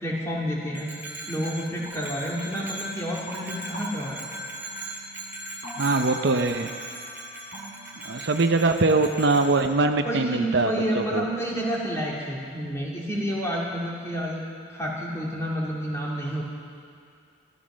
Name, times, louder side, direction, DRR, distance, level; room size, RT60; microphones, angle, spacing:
voice 1, 0.0-0.9 1.3-4.2 10.0-16.4, equal, 15° left, -5 dB, 2.8 m, -30 dB
Bell, 0.7-9.7, right 1 dB, 10° right, 2.1 m, -39 dB
sound 1, 1.9-9.4, right 1 dB, 30° left, 2.5 m, -45 dB
voice 2, 5.8-6.7 8.0-11.3, right 3 dB, 60° right, 6 dB, 0.7 m, -22 dB
14.5 x 14.0 x 6.3 m, 2.3 s
head